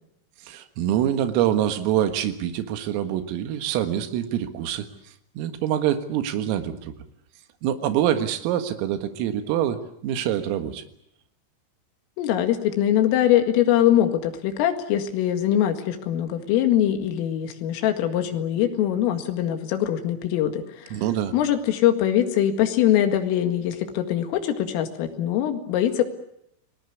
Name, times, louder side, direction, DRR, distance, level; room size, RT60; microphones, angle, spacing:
voice 1, 0.4-4.9 5.4-6.9 7.6-10.8 20.9-21.3, right 11 dB, 85° right, 8 dB, 4.3 m, -25 dB
voice 2, 12.2-21.0 21.3-26.0, left 11 dB, 80° left, 6 dB, 4.5 m, -22 dB
29.0 x 19.5 x 8.4 m, 0.76 s
omnidirectional pair, 5.9 m